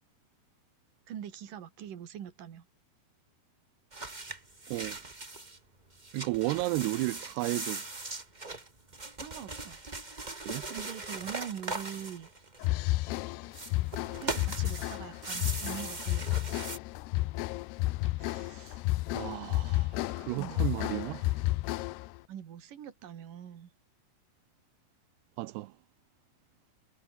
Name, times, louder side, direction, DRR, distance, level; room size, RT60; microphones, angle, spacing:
voice 1, 1.1-2.7 9.2-9.8 10.7-12.3 14.2-16.6 20.3-20.7 22.3-23.7, right 9 dB, 55° right, 3.7 m, -43 dB
Unrolling a paper map, 3.9-5.6 5.9-12.9 13.5-16.8, right 2 dB, 25° right, 1.0 m, -40 dB
voice 2, 4.7-5.0 6.1-7.8 10.5-10.7 18.2-18.8 19.1-21.4 25.4-25.7, right 20 dB, 85° right, 2.7 m, -34 dB
sound 1, 12.6-22.2, left 19 dB, 80° left, 2.8 m, -32 dB
omnidirectional pair, 4.9 m